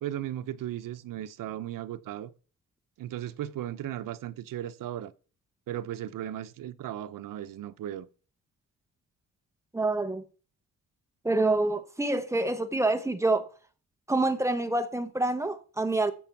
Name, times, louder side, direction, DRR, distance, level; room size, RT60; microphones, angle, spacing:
voice 1, 0.0-2.3 3.0-5.1 5.7-8.1, right 12 dB, 85° right, 0.7 m, -36 dB
voice 2, 9.7-10.2 11.2-13.5 14.1-16.1, right 2 dB, 10° right, 0.9 m, -27 dB
14.5 x 6.1 x 5.8 m
wide cardioid pair, 155°, 32 cm